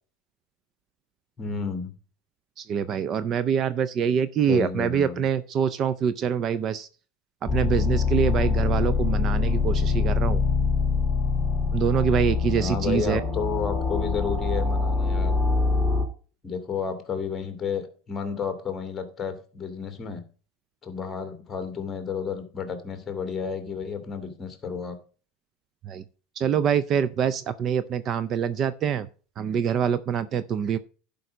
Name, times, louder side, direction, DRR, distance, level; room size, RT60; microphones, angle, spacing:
voice 1, 1.4-1.9 4.5-5.3 12.6-15.3 16.4-20.2 20.8-25.0, left 6 dB, 20° left, 8 dB, 2.1 m, -31 dB
voice 2, 2.6-6.9 7.5-10.4 11.7-13.2 25.9-26.0 26.4-29.1 29.4-30.8, right 8 dB, 35° right, 15 dB, 0.5 m, -25 dB
sound 1, 7.5-16.0, left 4 dB, ahead, 1.9 m, -24 dB
11.0 x 5.3 x 5.0 m, 0.38 s
supercardioid pair, 135°, 0 cm